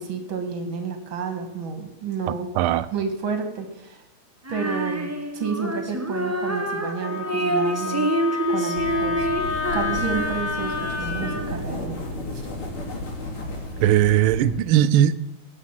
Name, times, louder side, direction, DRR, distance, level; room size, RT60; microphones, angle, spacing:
voice 1, 0.0-2.5 2.9-4.0 4.5-8.1 8.5-9.3 9.7-12.0, right 5 dB, 70° right, 2.6 m, -30 dB
voice 2, 2.5-2.9 13.8-15.3, right 11 dB, 90° right, 1.5 m, -19 dB
Female singing, 4.4-11.8, right 1 dB, 15° right, 0.5 m, -28 dB
Wind instrument woodwind instrument, 7.0-11.4, left 5 dB, 35° left, 0.9 m, -29 dB
sound 1, 8.7-14.6, left 1 dB, 85° left, 3.8 m, -33 dB
18.5 x 6.2 x 7.4 m
omnidirectional pair, 2.3 m